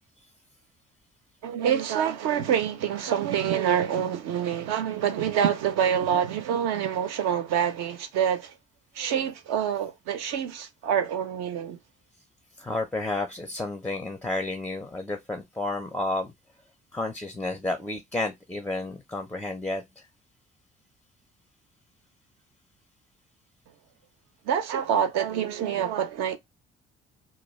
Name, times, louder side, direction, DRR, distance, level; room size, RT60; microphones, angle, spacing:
voice 1, 1.4-8.5 8.9-11.8 24.4-26.4, right 8 dB, 60° right, 0.5 m, -26 dB
voice 2, 12.6-16.3 16.9-20.0, left 2 dB, 5° left, 0.4 m, -31 dB
2.2 x 2.2 x 3.0 m
figure-of-eight pair, 45°, 31 cm